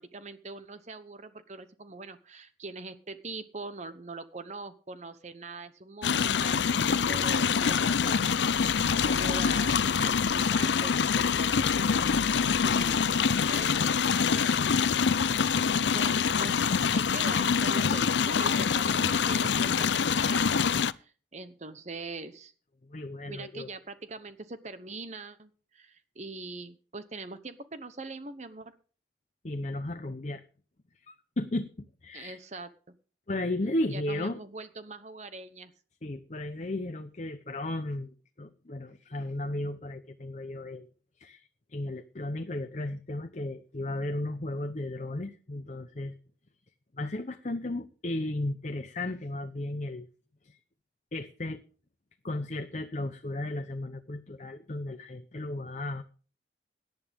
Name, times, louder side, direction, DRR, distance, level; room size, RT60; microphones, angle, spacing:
voice 1, 0.0-12.0 12.5-22.5 23.2-28.7 32.1-32.7 33.9-35.7, right 3 dB, 40° right, 11 dB, 0.9 m, -43 dB
sound 1, 6.0-20.9, left 6 dB, 75° left, 0.5 m, -25 dB
voice 2, 22.8-23.7 29.4-30.4 31.1-32.4 33.3-34.4 36.0-40.9 41.2-46.1 47.0-50.1 50.4-50.6 51.1-51.6 52.2-56.0, left 1 dB, 40° left, 8 dB, 0.8 m, -35 dB
18.0 x 10.5 x 3.6 m, 0.39 s
head